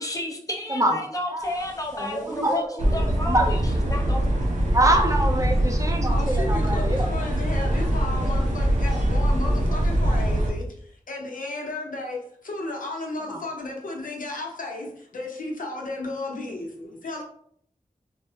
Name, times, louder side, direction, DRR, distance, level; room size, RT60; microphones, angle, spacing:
voice 1, 0.0-3.6 3.9-4.4, left 1 dB, 25° left, 1 dB, 0.6 m, -31 dB
sound 1, 1.6-1.9 2.3-2.4 2.8-10.5, right 1 dB, 65° right, 0.8 m, -23 dB
voice 2, 1.9-2.8 3.2-3.5 4.7-7.1 13.3-13.4, right 1 dB, 25° right, 2 dB, 0.5 m, -24 dB
voice 3, 6.0-10.6 11.1-17.2, left 2 dB, 75° left, 0 dB, 0.7 m, -34 dB
3.2 x 2.0 x 2.7 m, 0.63 s
wide cardioid pair, 55°, 14 cm